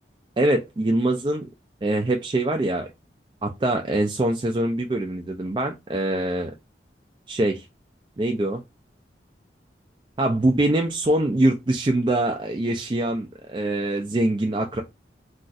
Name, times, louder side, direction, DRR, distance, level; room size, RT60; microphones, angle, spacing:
voice 1, 0.4-1.5 1.8-2.9 3.4-6.5 7.3-7.6 8.2-8.6 10.2-14.8, right 1 dB, 25° right, 0.3 m, -23 dB
2.4 x 2.4 x 3.9 m
head